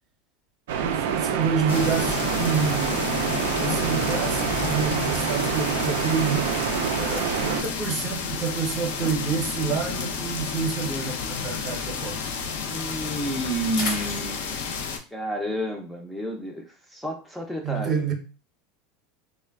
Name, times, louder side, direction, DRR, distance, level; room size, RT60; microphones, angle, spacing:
sound 1, 0.7-7.6, right 8 dB, 80° right, 0.3 m, -27 dB
voice 1, 0.8-3.0 3.5-6.6 7.4-12.3 17.6-18.1, right 6 dB, 40° right, 0.7 m, -28 dB
sound 2, 1.7-15.0, left 6 dB, 85° left, 0.4 m, -31 dB
voice 2, 7.0-7.4 12.6-17.9, right 1 dB, 5° left, 0.4 m, -31 dB
sound 3, 13.3-14.9, left 3 dB, 65° left, 0.9 m, -41 dB
3.1 x 2.1 x 2.3 m
supercardioid pair, 135°, 0 cm